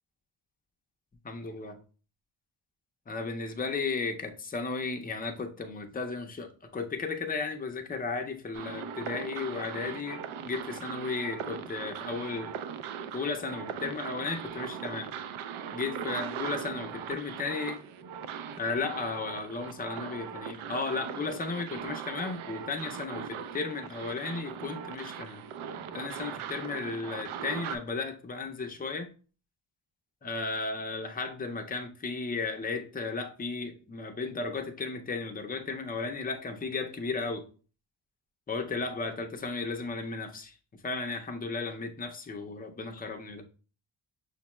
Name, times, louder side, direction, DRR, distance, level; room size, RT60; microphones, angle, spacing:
voice 1, 1.2-1.8 3.1-12.5 13.1-15.1 15.7-17.8 18.6-25.4 25.9-29.1 30.2-37.5 38.5-40.5 40.8-43.5, left 4 dB, 20° left, 4 dB, 0.4 m, -34 dB
sound 1, 8.5-27.8, right 7 dB, 80° right, 0.5 m, -39 dB
6.4 x 2.2 x 3.0 m, 0.38 s
wide cardioid pair, 140°, 48 cm